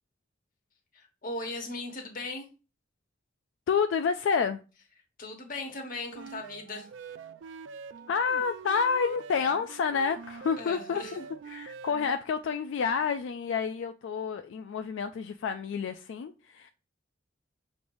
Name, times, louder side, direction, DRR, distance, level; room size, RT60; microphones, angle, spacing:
voice 1, 0.9-2.5 5.2-6.9 10.6-11.2, left 2 dB, 45° left, 1.2 m, -38 dB
voice 2, 3.7-4.6 8.1-11.2 11.5-16.7, left 6 dB, 80° left, 0.3 m, -29 dB
sound 1, 6.1-12.2, right 6 dB, 75° right, 0.3 m, -45 dB
6.2 x 3.3 x 2.6 m
head